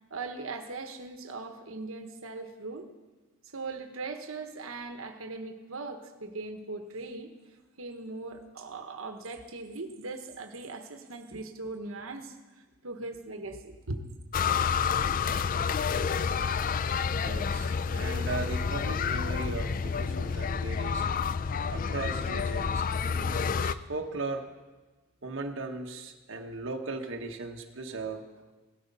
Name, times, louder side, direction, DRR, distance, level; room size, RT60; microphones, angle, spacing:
voice 1, 0.1-2.9 3.4-7.3 7.8-12.4 12.8-14.1, right 3 dB, 85° right, 6 dB, 1.2 m, -39 dB
sound 1, 14.3-23.7, left 6 dB, 40° left, 0.4 m, -29 dB
voice 2, 17.1-21.1 21.7-24.5 25.2-28.2, right 3 dB, 65° right, 2 dB, 1.2 m, -37 dB
17.0 x 13.5 x 5.4 m, 1.2 s
head